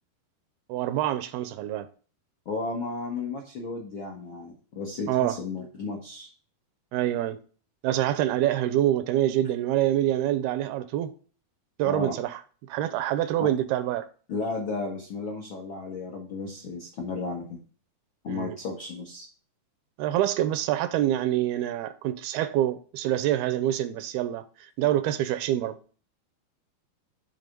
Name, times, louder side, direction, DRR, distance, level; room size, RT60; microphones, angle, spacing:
voice 1, 0.7-1.9 5.1-5.4 6.9-7.4 7.8-11.1 11.8-12.4 12.7-14.1 18.3-18.6 20.0-25.8, right 12 dB, 80° right, 2.4 m, -26 dB
voice 2, 2.4-6.3 11.8-12.2 13.4-13.5 14.3-17.6 18.2-19.3, left 3 dB, 80° left, 1.1 m, -34 dB
8.4 x 3.6 x 5.2 m
omnidirectional pair, 4.6 m